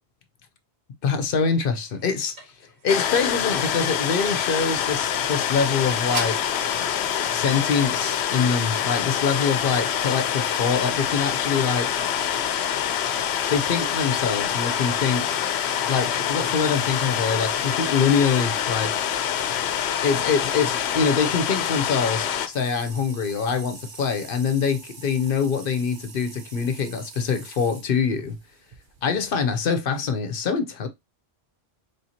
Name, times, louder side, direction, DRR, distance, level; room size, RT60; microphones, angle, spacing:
voice 1, 1.0-2.5 2.8-6.6 7.3-11.9 13.5-15.4 15.9-19.0 20.0-28.4 29.0-30.9, left 6 dB, 60° left, 0.8 m, -24 dB
sound 1, 1.4-6.5, right 1 dB, 85° right, 1.9 m, -40 dB
sound 2, 2.9-22.5, left 9 dB, 90° left, 0.8 m, -25 dB
sound 3, 22.5-29.3, right 4 dB, 55° right, 0.9 m, -45 dB
4.2 x 3.4 x 2.7 m
omnidirectional pair, 1.1 m